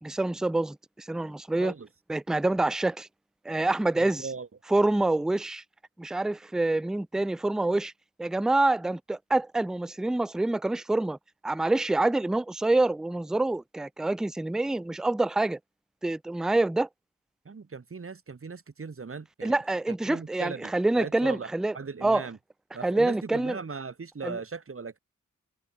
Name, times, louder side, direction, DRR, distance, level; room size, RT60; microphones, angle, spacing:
voice 1, 0.0-1.7 2.1-3.1 3.5-4.3 4.7-5.6 6.0-7.9 8.2-11.2 11.4-15.6 16.0-16.9 19.4-21.8 22.0-22.2 22.8-23.6 24.2-24.4, right 2 dB, ahead, 0.4 m, -26 dB
voice 2, 1.6-1.9 3.9-4.5 17.4-19.6 20.1-22.4 22.7-25.0, right 5 dB, 40° right, 1.4 m, -39 dB
cardioid pair, 40°, 34 cm